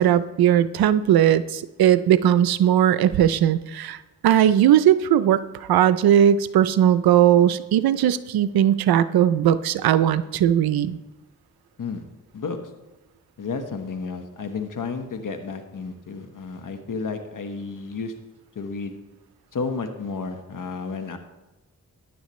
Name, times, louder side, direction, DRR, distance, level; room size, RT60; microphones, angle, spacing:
voice 1, 0.0-4.0 4.2-11.0, right 10 dB, 90° right, 14 dB, 0.5 m, -18 dB
voice 2, 13.4-18.1 18.5-19.0 19.5-21.2, left 4 dB, 60° left, 7 dB, 1.3 m, -32 dB
14.5 x 10.0 x 3.1 m, 1.1 s
cardioid pair, 50°, 36 cm